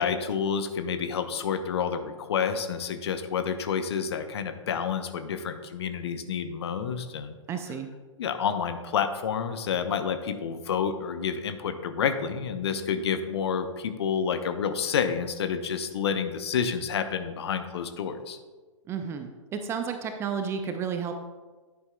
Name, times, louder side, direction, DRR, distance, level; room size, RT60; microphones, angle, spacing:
voice 1, 0.0-7.4 8.2-18.4, left 7 dB, 55° left, 9 dB, 0.8 m, -29 dB
voice 2, 7.5-7.9 18.9-21.1, right 6 dB, 15° right, 7 dB, 0.4 m, -32 dB
10.5 x 8.8 x 2.2 m, 1.3 s
figure-of-eight pair, 115°, 17 cm